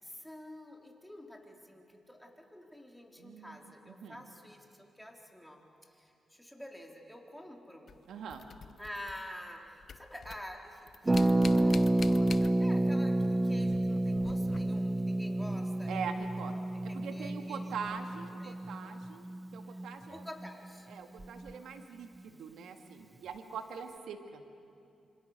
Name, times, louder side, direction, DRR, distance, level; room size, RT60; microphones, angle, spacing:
voice 1, 0.0-7.9 8.8-16.1 16.5-18.6 18.8-19.0 19.7-19.8 20.1-20.9, left 1 dB, 5° left, 1 dB, 3.9 m, -49 dB
voice 2, 3.2-3.6 3.9-4.2 8.1-8.4 15.9-16.5 16.8-19.3 19.5-20.2 20.9-24.4, right 6 dB, 80° right, 6 dB, 1.8 m, -42 dB
sound 1, 7.9-9.6 9.8-13.0 13.2-15.0 16.9-17.0 17.9-18.0, left 6 dB, 60° left, 0.9 m, -47 dB
Harp, 11.1-20.7 20.9-21.0 21.2-21.5, right 1 dB, 25° right, 0.7 m, -30 dB
27.0 x 26.0 x 6.7 m, 2.6 s
cardioid pair, 60°, 0 cm